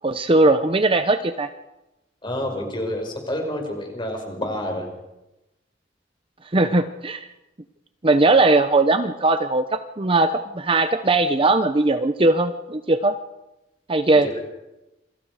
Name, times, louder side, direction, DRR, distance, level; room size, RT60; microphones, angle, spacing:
voice 1, 0.0-1.5 6.5-7.3 8.0-13.1 13.9-14.3, right 2 dB, 30° right, 9 dB, 0.8 m, -19 dB
voice 2, 2.2-4.9 14.2-14.3, left 1 dB, 25° left, 2 dB, 5.8 m, -28 dB
28.0 x 23.5 x 4.9 m, 0.98 s
head